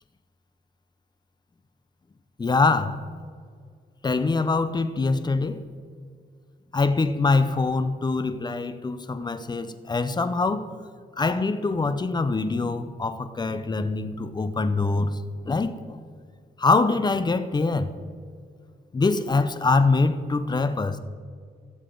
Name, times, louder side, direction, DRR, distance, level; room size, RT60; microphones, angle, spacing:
voice 1, 2.4-3.0 4.0-5.6 6.7-10.7 11.2-15.2 15.5-16.0 16.6-17.9 18.9-21.0, left 3 dB, 25° left, 0.7 m, -24 dB
17.0 x 7.2 x 3.9 m
cardioid pair, 115°, 17 cm